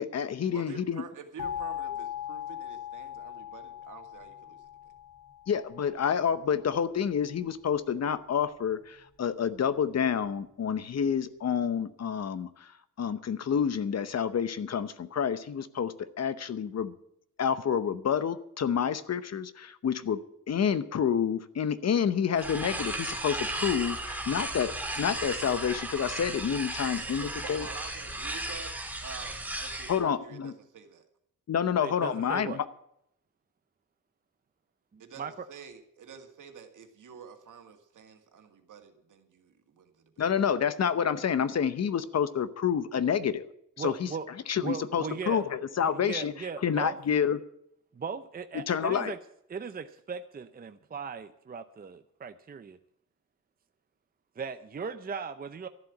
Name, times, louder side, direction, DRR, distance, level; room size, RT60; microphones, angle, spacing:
voice 1, 0.0-1.0 5.5-12.7 13.0-16.9 17.4-27.6 29.9-30.5 31.5-32.7 40.2-43.5 43.8-44.1 44.5-46.3 46.6-47.4 48.7-49.1, left 7 dB, 55° left, 14 dB, 0.8 m, -28 dB
voice 2, 0.5-4.7 27.2-28.7 29.0-31.1 35.0-39.9, right 6 dB, 70° right, 5 dB, 2.0 m, -48 dB
sound 1, 1.4-6.1, left 10 dB, 70° left, 4.4 m, -39 dB
sound 2, 22.3-30.0, right 1 dB, 5° right, 2.2 m, -35 dB
voice 3, 31.8-32.6 34.9-35.5 43.8-44.3 44.6-45.5 45.8-47.0 47.9-49.2 49.5-52.8 54.4-55.7, right 6 dB, 30° right, 9 dB, 0.6 m, -38 dB
13.0 x 7.6 x 9.6 m, 0.74 s
cardioid pair, 110°, 32 cm